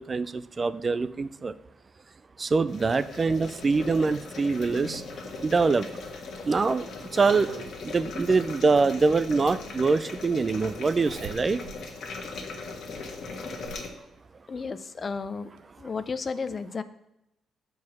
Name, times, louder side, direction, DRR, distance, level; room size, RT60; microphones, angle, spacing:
voice 1, 0.0-1.5 2.4-5.0 5.4-5.9 6.4-7.5 7.8-11.6, right 4 dB, 35° right, 15 dB, 0.3 m, -24 dB
sound 1, 2.7-13.9, left 3 dB, 65° left, 1.4 m, -39 dB
Zipper (clothing), 5.9-7.7 9.1-9.2 10.9-11.8 12.3-12.4 13.1-13.9 15.1-15.2 15.6-15.7, right 5 dB, 90° right, 0.7 m, -43 dB
voice 2, 14.5-15.5 15.8-16.8, left 4 dB, 35° left, 12 dB, 0.5 m, -33 dB
7.5 x 4.7 x 5.9 m, 0.85 s
cardioid pair, 90°, 0 cm